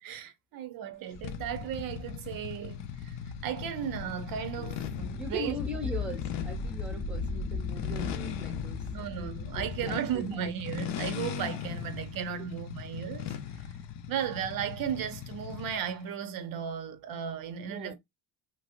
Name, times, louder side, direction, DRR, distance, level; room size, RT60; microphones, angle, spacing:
voice 1, 0.0-3.2 3.4-5.6 8.9-13.3 14.1-17.9, right 9 dB, 55° right, 0.5 m, -35 dB
sound 1, 1.1-10.0, left 4 dB, 40° left, 0.6 m, -39 dB
sound 2, 1.2-15.9, left 9 dB, 85° left, 0.7 m, -39 dB
voice 2, 5.2-8.8 9.5-10.4 17.7-17.9, right 1 dB, ahead, 0.5 m, -40 dB
3.2 x 2.6 x 2.4 m
cardioid pair, 180°, 41 cm